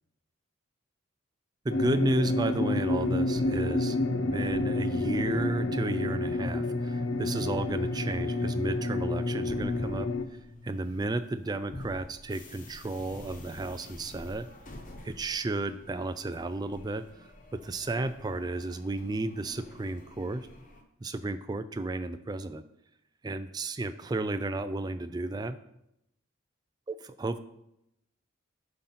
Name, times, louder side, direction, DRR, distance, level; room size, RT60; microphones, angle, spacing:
voice 1, 1.6-10.1 10.6-14.5 15.0-17.0 17.5-20.5 21.0-22.6 23.2-25.6 26.9-27.4, right 2 dB, 20° right, 10 dB, 0.3 m, -33 dB
sound 1, 1.7-10.2, left 2 dB, 65° left, 0.6 m, -29 dB
sound 2, 6.8-20.8, left 1 dB, 40° left, 1.0 m, -49 dB
11.0 x 3.9 x 5.7 m, 0.83 s
head